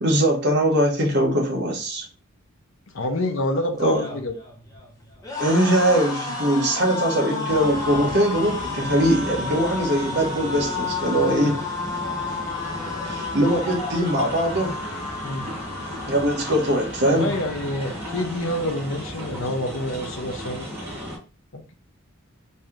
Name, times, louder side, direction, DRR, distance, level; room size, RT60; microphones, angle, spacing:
voice 1, 0.0-2.1 3.8-4.0 5.4-11.6 13.0-14.7 16.1-17.3, right 1 dB, 50° right, 0 dB, 1.1 m, -21 dB
voice 2, 2.9-4.3 11.4-11.6 15.2-15.5 17.1-20.7 21.5-21.6, left 1 dB, 65° left, 5 dB, 0.7 m, -27 dB
sound 1, 3.8-19.0 19.3-19.6 19.8-20.6, left 3 dB, 15° left, 0.7 m, -32 dB
sound 2, 7.5-21.2, equal, 10° right, 1.4 m, -35 dB
3.2 x 2.8 x 3.6 m, 0.36 s
head